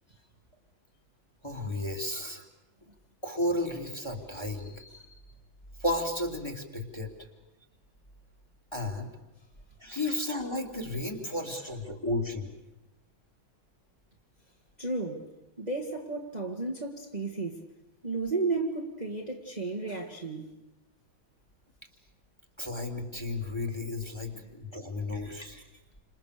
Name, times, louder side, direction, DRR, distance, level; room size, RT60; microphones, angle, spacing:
voice 1, 1.4-2.4 3.2-4.8 5.8-7.1 8.7-9.1 9.8-12.5 22.6-25.6, left 1 dB, 15° left, 2.9 m, -33 dB
voice 2, 4.5-5.2 11.5-11.7 14.8-15.3 15.6-17.6 18.0-20.6 24.3-24.4, right 3 dB, 20° right, 2.1 m, -34 dB
29.5 x 27.0 x 6.8 m
omnidirectional pair, 2.2 m